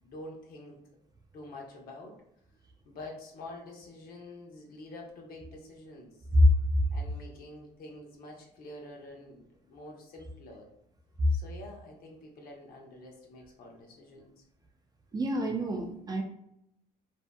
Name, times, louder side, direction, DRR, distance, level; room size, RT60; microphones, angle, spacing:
voice 1, 0.0-0.8 1.3-2.1 2.8-6.1 6.9-10.7 11.3-14.3, left 2 dB, 60° left, 0 dB, 0.8 m, -47 dB
voice 2, 15.1-16.2, equal, 25° right, 3 dB, 0.3 m, -24 dB
2.6 x 2.5 x 2.2 m, 0.76 s
cardioid pair, 110°, 17 cm